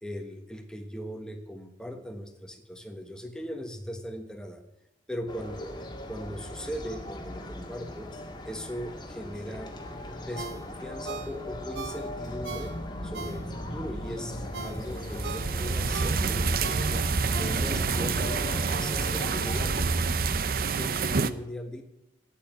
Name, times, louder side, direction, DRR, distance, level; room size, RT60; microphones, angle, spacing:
voice 1, 0.0-4.6 5.1-5.8 6.1-8.1 8.4-9.7 10.2-12.7 13.0-17.0 17.3-21.8, equal, 5° left, 5 dB, 1.2 m, -39 dB
sound 1, 5.3-19.7, left 1 dB, 25° left, 1.7 m, -38 dB
Ringtone, 10.4-13.8 14.2-18.0 18.4-18.5, right 4 dB, 80° right, 1.0 m, -41 dB
sound 2, 14.8-21.3, right 4 dB, 55° right, 0.6 m, -27 dB
9.4 x 8.6 x 9.1 m, 0.94 s
head